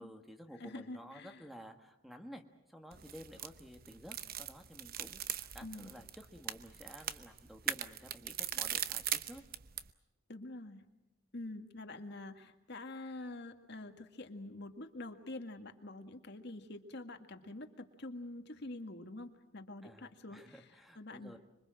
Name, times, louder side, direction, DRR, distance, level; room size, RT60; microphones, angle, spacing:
voice 1, 0.0-2.4 2.7-9.4 18.6-18.7 19.8-21.4, equal, ahead, 5 dB, 1.5 m, -53 dB
voice 2, 0.6-1.4 5.6-6.0 10.3-10.8 11.3-20.6 21.0-21.4, left 2 dB, 55° left, 6 dB, 1.9 m, -46 dB
sound 1, 2.9-9.9, right 10 dB, 45° right, 0.9 m, -40 dB
26.0 x 23.5 x 7.6 m, 0.93 s
head